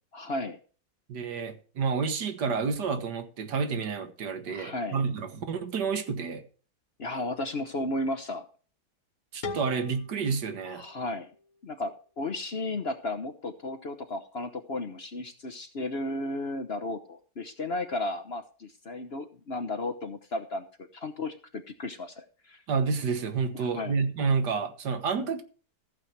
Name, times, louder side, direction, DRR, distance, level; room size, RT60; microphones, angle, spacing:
voice 1, 0.1-0.6 4.5-5.0 7.0-8.5 10.8-11.3 11.6-20.7 20.9-22.6 23.5-24.0, left 2 dB, 45° left, 1.1 m, -34 dB
voice 2, 1.1-6.5 9.3-10.8 22.7-25.4, right 5 dB, 75° right, 1.9 m, -29 dB
sound 1, 9.4-12.3, left 4 dB, 60° left, 1.8 m, -43 dB
14.5 x 8.9 x 3.4 m
omnidirectional pair, 1.8 m